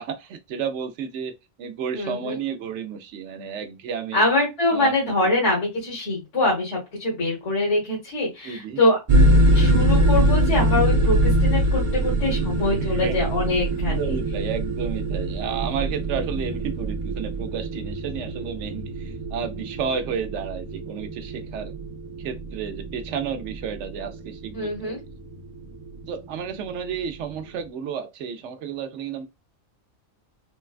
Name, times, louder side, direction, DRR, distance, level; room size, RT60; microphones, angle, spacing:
voice 1, 0.0-1.3 1.6-4.3 4.7-4.9 8.4-8.8 12.8-13.1 13.9-21.7 22.2-25.0 26.1-29.3, right 7 dB, 70° right, 0.9 m, -32 dB
voice 2, 1.9-2.4 4.1-9.0 9.5-14.0 24.5-25.0, left 2 dB, 65° left, 1.7 m, -24 dB
sound 1, 9.1-27.7, right 1 dB, 55° right, 0.3 m, -24 dB
3.8 x 2.2 x 2.4 m
omnidirectional pair, 1.3 m